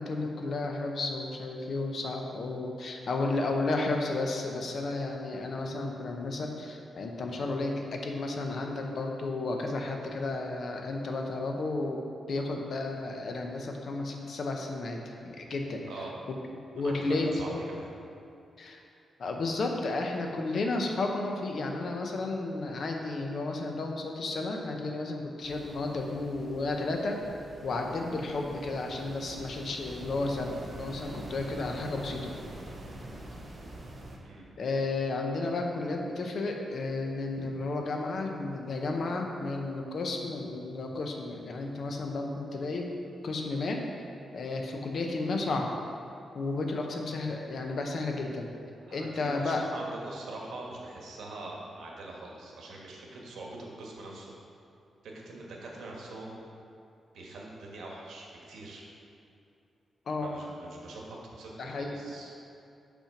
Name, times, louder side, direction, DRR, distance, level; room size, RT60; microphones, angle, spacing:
voice 1, 0.0-12.0 12.3-15.8 16.3-16.4 16.7-17.7 18.6-18.8 19.2-27.2 27.6-32.3 34.6-42.9 43.2-43.8 44.3-45.7 46.3-48.5 48.9-49.6 60.1-60.4 61.6-62.0, left 2 dB, 50° left, 2 dB, 0.7 m, -32 dB
voice 2, 16.8-17.5 17.8-17.9 34.2-34.5 48.9-54.3 55.0-56.4 57.1-58.9 60.2-62.3, right 2 dB, 90° right, -2 dB, 1.2 m, -43 dB
sound 1, 25.4-34.2, right 1 dB, 25° right, 0.7 m, -45 dB
5.7 x 4.4 x 5.8 m, 2.7 s
wide cardioid pair, 175°, 0 cm